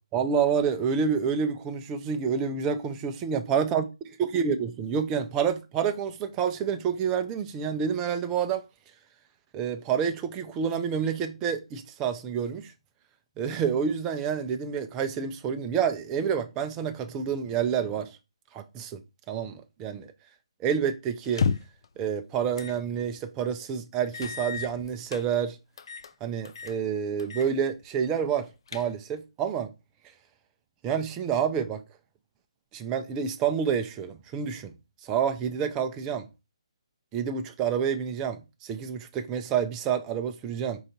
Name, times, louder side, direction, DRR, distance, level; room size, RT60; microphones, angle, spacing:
voice 1, 0.1-3.8 4.2-8.6 9.5-12.7 13.4-18.1 18.5-19.0 19.3-20.1 20.6-21.4 22.0-25.6 26.2-29.7 30.8-31.8 32.7-34.7 35.0-36.3 37.1-40.8, right 7 dB, 20° right, 0.5 m, -28 dB
sound 1, 21.2-21.9 22.6-22.8 23.2-23.3 24.1-25.2 25.8-26.1 26.4-26.8 27.2-27.5 27.8-27.9 28.4-29.2, left 6 dB, 55° left, 0.4 m, -32 dB
4.7 x 2.6 x 4.2 m
hypercardioid pair, 150°, 3 cm